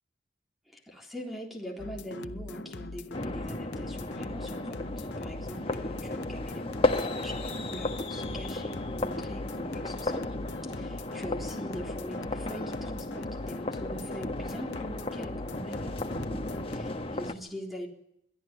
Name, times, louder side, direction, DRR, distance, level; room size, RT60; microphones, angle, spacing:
voice 1, 0.7-10.3 10.6-17.9, equal, ahead, 1 dB, 3.6 m, -42 dB
sound 1, 1.8-16.8, left 3 dB, 75° left, 0.7 m, -42 dB
sound 2, 3.1-17.3, left 2 dB, 30° left, 1.4 m, -34 dB
22.5 x 13.0 x 9.7 m, 0.76 s
head